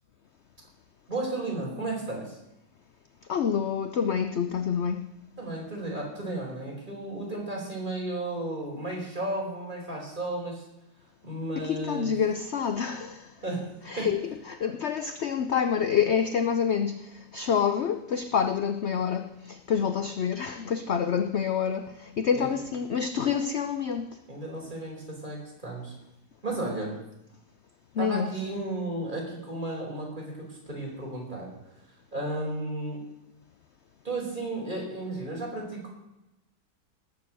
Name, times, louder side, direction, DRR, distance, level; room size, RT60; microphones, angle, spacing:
voice 1, 1.1-2.4 5.4-10.6 11.2-12.1 13.4-14.1 22.3-22.5 24.3-25.9 26.4-26.9 28.0-31.5 32.1-33.0 34.0-35.9, right 2 dB, 25° right, -2 dB, 4.9 m, -34 dB
voice 2, 3.3-5.0 11.6-13.3 13.9-14.2 14.5-24.1 27.9-28.3, left 7 dB, 60° left, 9 dB, 0.7 m, -27 dB
18.5 x 7.2 x 7.7 m, 0.92 s
omnidirectional pair, 1.9 m